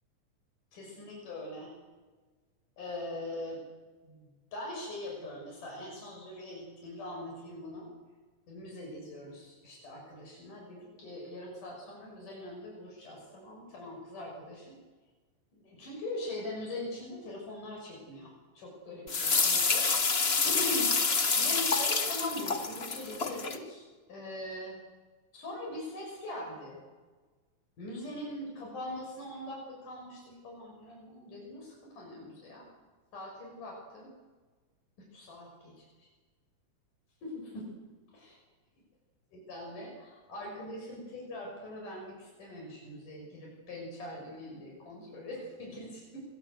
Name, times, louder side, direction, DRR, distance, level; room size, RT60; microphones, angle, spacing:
voice 1, 0.7-1.7 2.8-3.6 4.0-7.9 8.5-14.8 15.5-19.9 20.4-20.9 21.4-24.8 25.3-26.8 27.8-32.7 33.1-34.1 35.1-36.1 37.2-37.7 38.1-38.4 39.3-46.2, left 1 dB, 85° left, -1 dB, 8.1 m, -42 dB
sound 1, 19.1-23.6, left 4 dB, 45° left, 0.7 m, -28 dB
27.0 x 22.5 x 8.1 m, 1.4 s
omnidirectional pair, 3.6 m